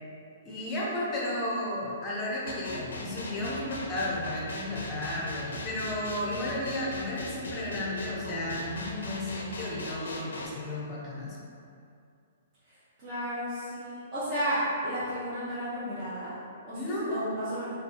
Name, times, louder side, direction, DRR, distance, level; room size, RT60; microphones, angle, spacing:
voice 1, 0.4-11.4 16.7-17.3, left 1 dB, 25° left, -5 dB, 0.6 m, -33 dB
sound 1, 2.5-10.5, left 2 dB, 85° left, 0.4 m, -39 dB
voice 2, 12.7-16.3 16.6-16.8 17.1-17.7, equal, 30° right, -14 dB, 0.8 m, -33 dB
2.5 x 2.4 x 2.5 m, 2.4 s
hypercardioid pair, 140°, 0 cm